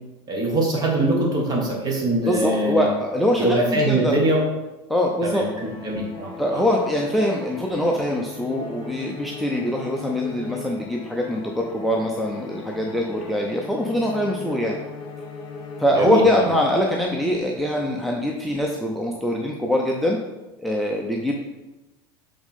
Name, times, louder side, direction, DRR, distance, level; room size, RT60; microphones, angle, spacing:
voice 1, 0.3-2.9 3.4-4.4 5.2-6.6 16.0-16.5, right 1 dB, 30° right, -1 dB, 1.7 m, -23 dB
voice 2, 2.3-4.2 4.9-5.4 6.4-14.8 15.8-20.2 20.6-21.3, left 1 dB, ahead, 0 dB, 0.6 m, -23 dB
sound 1, 5.2-16.7, left 4 dB, 35° left, 1.1 m, -38 dB
7.0 x 3.7 x 3.6 m, 1.1 s
supercardioid pair, 110°, 13 cm